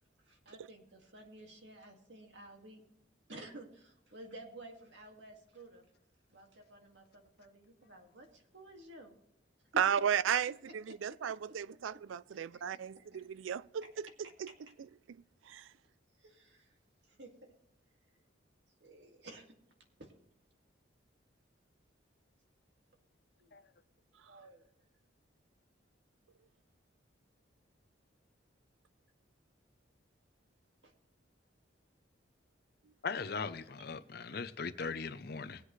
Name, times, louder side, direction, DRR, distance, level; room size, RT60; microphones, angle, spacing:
voice 1, 0.3-2.8 3.3-5.8 6.3-9.2 9.7-10.0 10.7-11.0 11.9-12.0 12.3-13.3 13.8-13.9 16.2-16.7 17.0-17.5 18.8-19.5 20.0-20.1 23.4-23.5 24.3-24.7 30.8-30.9 33.8-33.9 34.4-34.5, right 1 dB, 65° right, 2.1 m, -53 dB
voice 2, 9.8-14.1 14.4-14.5 15.5-15.7, right 8 dB, 90° right, 0.4 m, -34 dB
voice 3, 33.0-35.6, left 5 dB, 55° left, 0.7 m, -39 dB
19.5 x 8.2 x 3.2 m
head